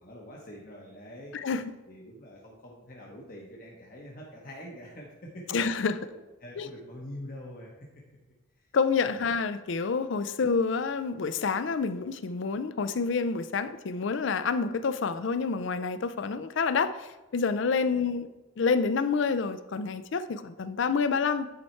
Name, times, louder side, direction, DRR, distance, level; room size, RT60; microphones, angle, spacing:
voice 1, 0.0-1.5 1.9-5.6 6.1-7.7 17.9-18.1, equal, 40° left, 1.0 m, -45 dB
voice 2, 1.3-1.7 5.5-6.0 6.6-6.7 8.7-18.3 18.6-21.5, left 5 dB, 65° left, 0.4 m, -28 dB
9.4 x 4.3 x 4.4 m
head